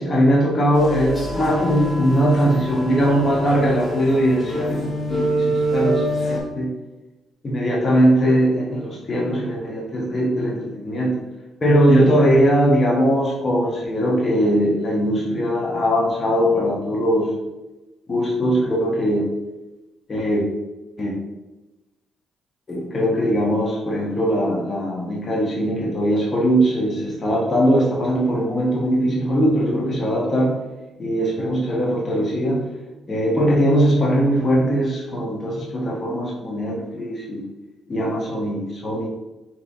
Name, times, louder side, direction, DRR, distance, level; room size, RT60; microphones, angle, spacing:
voice 1, 0.0-6.7 7.4-11.1 11.6-17.3 18.1-19.2 20.1-20.4 21.0-21.1 22.7-30.5 31.0-32.6 33.1-37.4 37.9-39.1, equal, 35° left, -3 dB, 1.1 m, -20 dB
sound 1, 0.7-6.4, right 1 dB, 15° left, 1.3 m, -26 dB
3.5 x 3.0 x 4.1 m, 1.0 s
cardioid pair, 90°, 0 cm